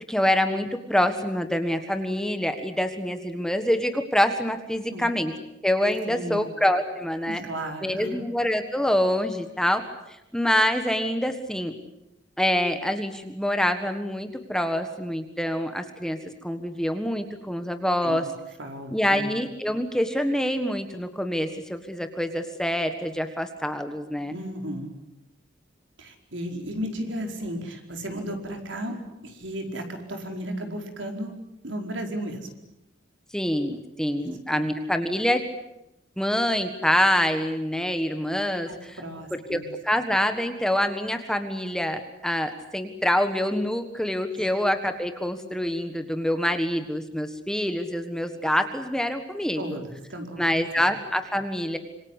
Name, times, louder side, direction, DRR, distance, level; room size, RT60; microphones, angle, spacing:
voice 1, 0.1-5.3 5.6-7.4 7.8-11.7 12.4-16.2 16.4-18.2 18.9-24.3 33.3-35.4 36.2-39.0 39.3-49.6 50.4-51.8, equal, 5° left, 7 dB, 1.5 m, -26 dB
voice 2, 6.0-6.5 7.3-8.3 18.0-18.2 18.6-19.3 24.3-24.9 26.0-31.4 31.6-32.5 34.5-34.6 38.7-39.6 44.3-44.4 49.6-50.9, equal, 75° right, 3 dB, 4.8 m, -34 dB
26.5 x 25.5 x 8.2 m, 0.88 s
head